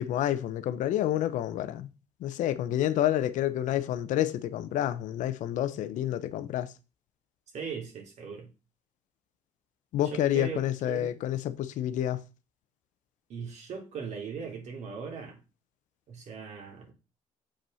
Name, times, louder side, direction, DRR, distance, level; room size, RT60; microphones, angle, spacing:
voice 1, 0.0-1.9 2.2-6.7 9.9-12.2, left 12 dB, 75° left, 0.8 m, -29 dB
voice 2, 7.5-8.5 10.0-11.2 13.3-15.4 16.1-16.9, right 6 dB, 60° right, 3.3 m, -39 dB
7.3 x 5.2 x 5.6 m
cardioid pair, 90°, 13 cm